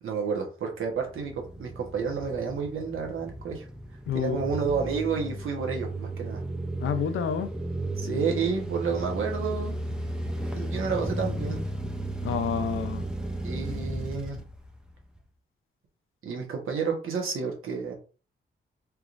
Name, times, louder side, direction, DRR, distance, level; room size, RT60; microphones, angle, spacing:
voice 1, 0.0-3.7 4.1-6.4 8.0-9.8 10.5-11.6 13.4-14.4 16.2-17.9, right 5 dB, 85° right, 1.1 m, -30 dB
sound 1, 0.8-15.2, right 1 dB, 5° right, 0.5 m, -34 dB
voice 2, 4.1-4.5 6.8-7.5 12.2-13.0, left 8 dB, 85° left, 0.5 m, -29 dB
3.4 x 3.0 x 2.5 m
wide cardioid pair, 135°, 21 cm